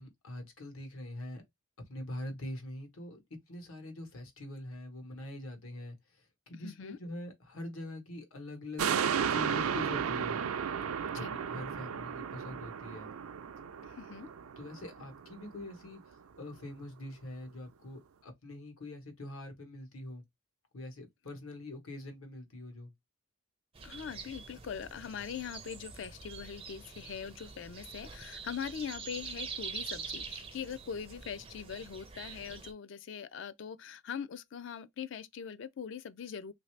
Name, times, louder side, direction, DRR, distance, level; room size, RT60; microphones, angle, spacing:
voice 1, 0.0-1.4 1.9-8.9 9.2-10.4 11.1-13.1 14.6-20.2 20.7-22.9, left 1 dB, 80° left, 1.1 m, -44 dB
voice 2, 6.6-7.0 11.1-11.3 13.8-14.3 23.8-36.5, left 7 dB, 60° left, 0.3 m, -42 dB
sound 1, 8.8-15.4 15.9-16.0, right 7 dB, 85° right, 0.4 m, -34 dB
sound 2, 23.7-32.7, right 5 dB, 25° right, 0.4 m, -45 dB
3.1 x 2.6 x 3.2 m
head